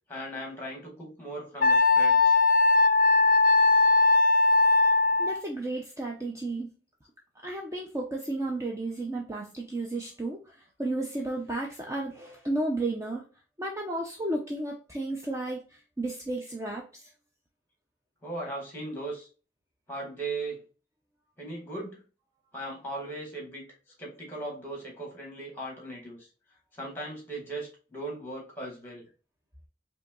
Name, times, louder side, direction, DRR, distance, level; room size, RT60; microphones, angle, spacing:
voice 1, 0.1-2.4 18.2-19.3 19.9-20.6 21.4-22.0 22.5-23.7 24.0-26.3 26.7-29.0, right 2 dB, 10° left, -1 dB, 2.1 m, -38 dB
Wind instrument woodwind instrument, 1.6-5.4, left 3 dB, 55° left, 0.4 m, -20 dB
voice 2, 5.2-6.7 7.4-13.2 13.6-17.1, right 2 dB, 20° right, -1 dB, 0.6 m, -33 dB
4.9 x 2.8 x 2.4 m, 0.35 s
head